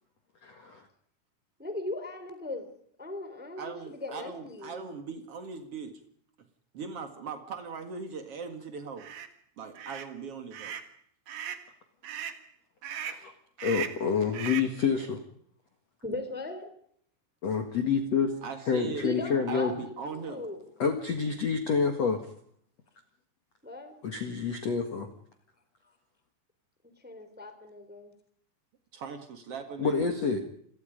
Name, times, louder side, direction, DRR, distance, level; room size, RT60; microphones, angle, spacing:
voice 1, 0.4-0.8 13.0-13.3 13.6-15.2 17.4-18.3 18.7-19.7 20.8-22.2 24.0-25.1 29.8-30.4, left 6 dB, 75° left, 6 dB, 1.4 m, -28 dB
voice 2, 1.6-2.7 3.0-4.9 16.0-16.7 19.0-20.6 23.6-23.9 27.0-28.1, left 2 dB, 5° right, 8 dB, 2.0 m, -38 dB
voice 3, 3.6-6.0 6.7-9.1 9.6-10.8 18.4-19.1 19.5-20.4 28.9-30.1, right 5 dB, 70° right, 7 dB, 1.3 m, -39 dB
sound 1, 9.0-9.3 9.7-10.1 10.5-10.9 11.3-11.7 12.0-12.4 12.8-13.2 13.6-14.0 14.3-14.7, right 9 dB, 85° right, 1.5 m, -38 dB
29.0 x 22.5 x 5.2 m, 0.65 s
omnidirectional pair, 6.0 m